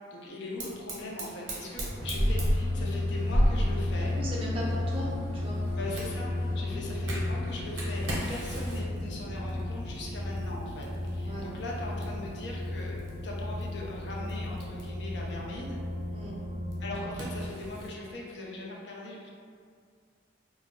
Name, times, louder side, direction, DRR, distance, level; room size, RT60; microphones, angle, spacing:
voice 1, 0.1-4.2 5.7-13.0 13.2-15.8 16.8-19.3, left 2 dB, 60° left, -3 dB, 0.5 m, -40 dB
Fire, 0.6-17.9, equal, 75° right, 0.7 m, -36 dB
sound 1, 2.0-17.5, left 1 dB, 30° left, 0.9 m, -34 dB
voice 2, 4.0-5.6 11.2-11.5 16.1-16.4, equal, 30° right, -5 dB, 0.5 m, -37 dB
2.2 x 2.0 x 3.5 m, 2.2 s
head